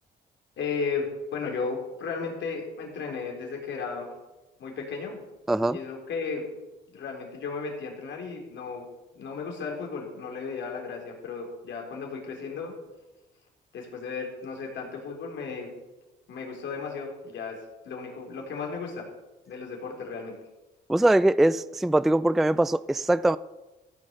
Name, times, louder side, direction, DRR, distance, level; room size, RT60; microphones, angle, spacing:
voice 1, 0.6-4.1 4.6-5.2 5.7-6.5 6.9-8.9 9.1-12.7 13.7-15.7 16.3-17.6 17.8-19.1 19.5-20.4, left 5 dB, 70° left, 4.0 m, -34 dB
voice 2, 5.5-5.8 20.9-23.4, right 1 dB, ahead, 0.3 m, -22 dB
15.0 x 7.2 x 6.8 m
cardioid pair, 90°, 20 cm